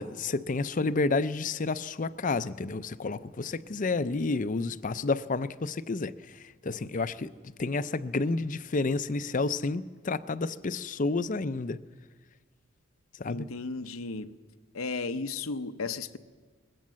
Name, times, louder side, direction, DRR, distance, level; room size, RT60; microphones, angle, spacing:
voice 1, 0.0-11.8 13.2-13.5, left 3 dB, 40° left, 14 dB, 0.5 m, -30 dB
voice 2, 13.3-14.3 14.7-16.2, left 3 dB, 75° left, 10 dB, 0.8 m, -34 dB
20.5 x 17.0 x 7.5 m, 1.4 s
head